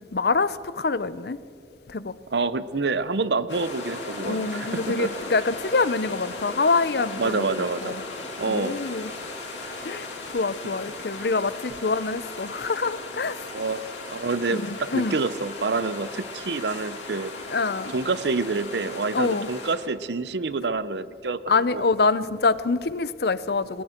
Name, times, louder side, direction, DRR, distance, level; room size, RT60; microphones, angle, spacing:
voice 1, 0.0-1.4 1.9-2.1 4.2-8.0 8.5-9.1 9.8-10.1 10.3-13.4 14.5-15.2 17.5-17.9 19.1-19.5 21.5-23.8, left 4 dB, 60° left, 16 dB, 0.6 m, -25 dB
voice 2, 2.3-5.1 7.2-8.0 8.4-8.8 13.5-17.3 17.9-21.4 21.7-21.9, right 3 dB, 65° right, 15 dB, 0.7 m, -27 dB
sound 1, 3.5-19.7, left 3 dB, 80° left, 5.9 m, -37 dB
27.5 x 21.5 x 4.5 m, 2.3 s
head